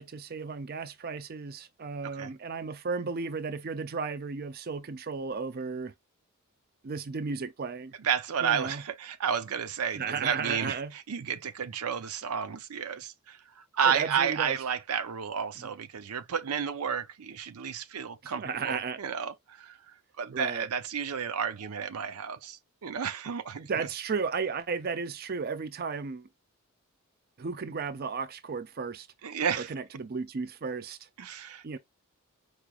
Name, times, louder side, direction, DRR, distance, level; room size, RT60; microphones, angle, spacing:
voice 1, 0.0-5.9 6.8-7.9 8.4-8.8 9.9-10.9 13.8-14.6 15.6-15.7 18.2-19.0 20.3-20.7 23.6-26.3 27.4-29.1 29.6-31.1 31.6-31.8, right 5 dB, 45° right, 0.5 m, -34 dB
voice 2, 8.0-10.8 11.1-19.8 20.2-23.9 29.2-29.7 31.2-31.8, right 7 dB, 90° right, 0.6 m, -32 dB
4.8 x 3.1 x 2.3 m
head